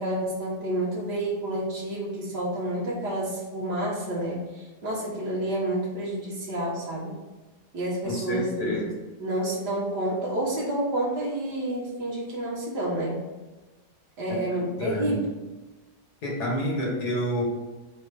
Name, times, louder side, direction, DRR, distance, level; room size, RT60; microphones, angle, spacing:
voice 1, 0.0-7.1 7.7-8.7 9.2-13.3 14.2-15.3, right 1 dB, 70° right, -5 dB, 2.5 m, -29 dB
voice 2, 8.0-8.9 14.3-14.4 14.8-15.2 16.2-17.4, equal, 65° left, -2 dB, 2.3 m, -29 dB
5.1 x 4.7 x 5.4 m, 1.2 s
omnidirectional pair, 1.8 m